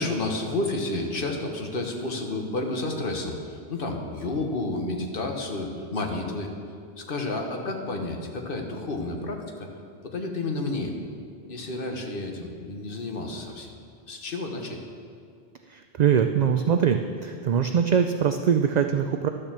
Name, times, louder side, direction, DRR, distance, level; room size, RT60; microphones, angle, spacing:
voice 1, 0.0-6.5 7.0-9.7 10.0-10.9 11.5-13.7 14.1-14.8, left 2 dB, 55° left, 2 dB, 1.4 m, -31 dB
voice 2, 15.7-19.3, right 7 dB, 55° right, 7 dB, 0.5 m, -23 dB
12.0 x 6.6 x 7.4 m, 2.3 s
omnidirectional pair, 1.1 m